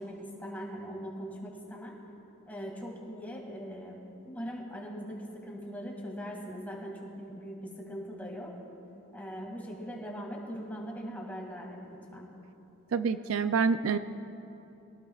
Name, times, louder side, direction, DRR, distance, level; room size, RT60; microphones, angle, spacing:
voice 1, 0.0-1.9 2.5-4.0 4.3-7.6 7.9-8.5 9.1-12.3, equal, 10° left, -2 dB, 2.1 m, -40 dB
voice 2, 12.9-14.0, right 5 dB, 75° right, 11 dB, 0.5 m, -27 dB
22.5 x 17.5 x 2.4 m, 2.9 s
head